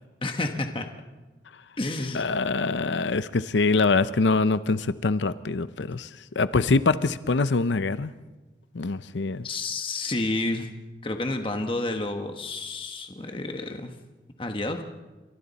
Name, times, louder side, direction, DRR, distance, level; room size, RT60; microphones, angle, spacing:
voice 1, 0.2-0.9 1.8-2.3 9.4-10.7 11.0-13.9 14.4-14.8, left 2 dB, 30° left, 5 dB, 1.3 m, -30 dB
voice 2, 2.1-6.1 6.4-8.1 8.7-9.5, left 3 dB, 90° left, 14 dB, 0.7 m, -24 dB
29.5 x 24.5 x 4.2 m, 1.2 s
head